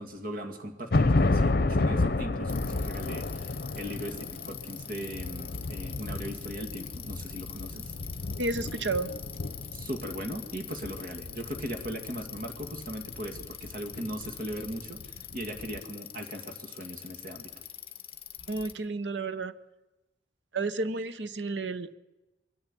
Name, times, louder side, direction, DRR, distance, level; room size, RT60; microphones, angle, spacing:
voice 1, 0.0-7.9 9.7-17.5, equal, 50° right, 5 dB, 2.2 m, -38 dB
sound 1, 0.9-15.3 15.6-15.8, left 2 dB, 55° left, 0.8 m, -31 dB
Bicycle, 2.5-18.7, left 10 dB, 30° left, 1.7 m, -45 dB
voice 2, 8.4-9.1 18.5-19.5 20.5-22.0, right 3 dB, 80° right, 13 dB, 0.9 m, -31 dB
22.5 x 13.5 x 9.9 m, 1.1 s
head